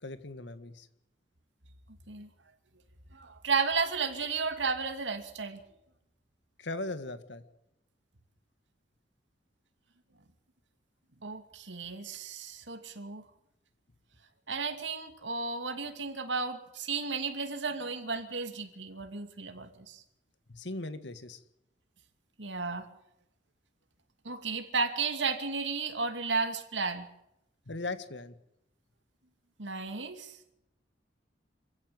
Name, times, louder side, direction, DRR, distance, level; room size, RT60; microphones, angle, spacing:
voice 1, 0.0-0.9 6.6-7.4 20.5-21.4 27.7-28.3, left 2 dB, 70° left, 1.8 m, -38 dB
voice 2, 3.1-5.6 11.2-13.2 14.5-20.0 22.4-22.9 24.2-27.1 29.6-30.5, right 4 dB, 80° right, 2.6 m, -33 dB
26.0 x 15.5 x 7.9 m
head